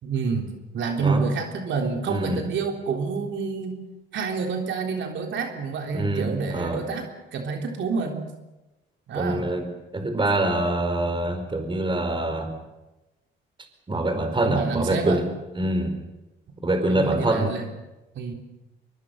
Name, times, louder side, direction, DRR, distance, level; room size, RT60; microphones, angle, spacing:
voice 1, 0.0-3.8 4.1-8.3 9.1-9.5 14.4-15.2 16.9-17.7 18.1-18.3, right 5 dB, 70° right, 3 dB, 3.6 m, -28 dB
voice 2, 2.1-2.4 5.9-6.9 9.1-12.6 13.9-15.3 15.5-16.0 16.6-17.6, right 1 dB, 25° right, 7 dB, 4.7 m, -25 dB
23.5 x 23.0 x 6.6 m, 1.0 s
cardioid pair, 90°, 20 cm